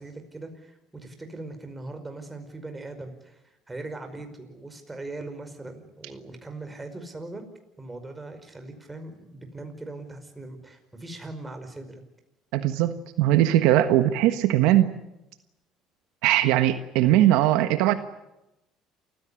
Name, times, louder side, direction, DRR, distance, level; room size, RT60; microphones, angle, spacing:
voice 1, 0.0-3.4 3.7-7.4 7.8-12.0, right 2 dB, 15° right, 6 dB, 5.2 m, -40 dB
voice 2, 12.5-14.9 16.2-17.9, right 13 dB, 80° right, 9 dB, 1.4 m, -20 dB
28.0 x 15.5 x 10.0 m, 0.93 s
supercardioid pair, 105°, 0 cm